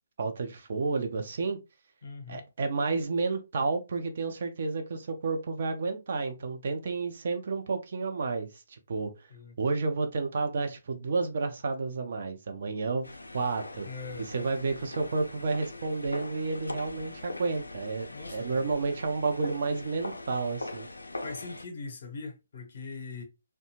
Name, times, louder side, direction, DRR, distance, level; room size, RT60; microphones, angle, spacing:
voice 1, 0.2-1.6 2.3-9.1 9.6-13.9 14.2-20.9, right 4 dB, 50° right, 0.5 m, -31 dB
voice 2, 2.0-2.4 9.3-9.6 13.8-14.5 18.1-18.7 21.2-23.2, left 4 dB, 50° left, 0.7 m, -41 dB
sound 1, 13.0-21.7, left 2 dB, 75° left, 0.4 m, -42 dB
2.7 x 2.2 x 2.8 m
figure-of-eight pair, 135°, 0 cm